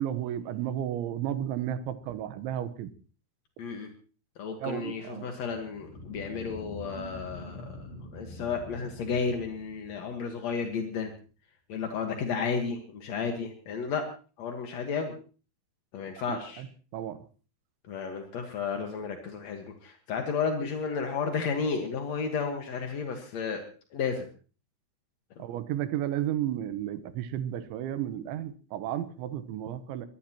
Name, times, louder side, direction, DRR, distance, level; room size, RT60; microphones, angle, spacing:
voice 1, 0.0-2.9 4.6-5.3 16.3-16.7 16.9-17.2 25.4-30.1, right 11 dB, 90° right, 11 dB, 3.4 m, -33 dB
voice 2, 3.6-3.9 4.4-7.8 8.1-11.1 11.7-14.0 14.4-15.1 15.9-16.6 17.9-23.6 23.9-24.3 25.4-25.5, left 5 dB, 60° left, 4 dB, 1.9 m, -32 dB
sound 1, 5.5-10.4, left 1 dB, 80° left, 6.5 m, -44 dB
23.5 x 17.0 x 3.0 m, 0.38 s
omnidirectional pair, 5.3 m